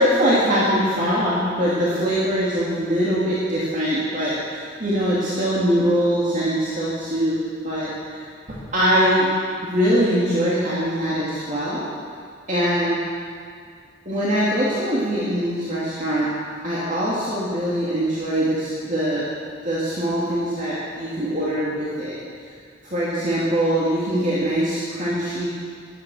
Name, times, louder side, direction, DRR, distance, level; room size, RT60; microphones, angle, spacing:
voice 1, 0.0-7.4 7.6-8.3 8.7-9.3 9.6-11.9 12.5-13.0 14.0-16.3 16.6-19.3 19.6-22.2 22.8-25.5, equal, 40° right, -8 dB, 2.7 m, -22 dB
16.0 x 12.0 x 6.4 m, 2.1 s
head